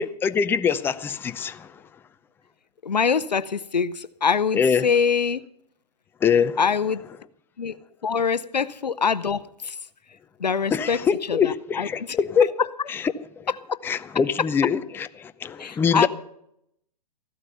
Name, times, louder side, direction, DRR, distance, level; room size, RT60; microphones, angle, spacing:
voice 1, 0.0-1.8 4.5-4.9 6.2-6.6 10.7-12.5 12.9-13.5 13.8-16.1, left 6 dB, 10° left, 0.6 m, -24 dB
voice 2, 2.8-5.4 6.6-7.0 7.6-7.8 8.0-9.7 10.4-11.0 11.3-11.9 15.6-16.1, left 6 dB, 90° left, 0.7 m, -24 dB
15.0 x 12.0 x 5.7 m
hypercardioid pair, 120°, 21 cm